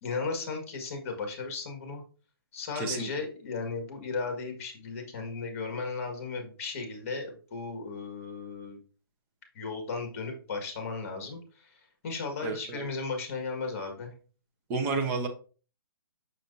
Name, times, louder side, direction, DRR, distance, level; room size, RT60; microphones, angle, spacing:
voice 1, 0.0-2.0 2.5-8.8 9.5-14.1, left 4 dB, 35° left, 4 dB, 1.8 m, -35 dB
voice 2, 2.8-3.1 12.4-12.8 14.7-15.3, right 4 dB, 15° right, 4 dB, 0.7 m, -30 dB
6.4 x 6.0 x 2.7 m, 0.37 s
hypercardioid pair, 165°, 13 cm